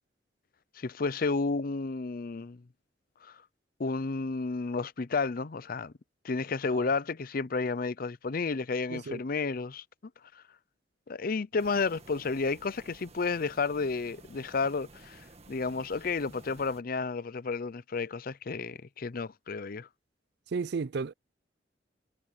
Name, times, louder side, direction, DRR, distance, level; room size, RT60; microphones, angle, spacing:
voice 1, 0.8-2.6 3.2-3.4 3.8-5.9 6.2-9.8 10.3-10.4 11.1-15.2 15.5-19.9, left 4 dB, 50° left, 0.6 m, -31 dB
sound 1, 11.6-16.8, right 2 dB, 35° right, 1.8 m, -53 dB
voice 2, 20.5-21.1, right 4 dB, 65° right, 0.5 m, -33 dB
head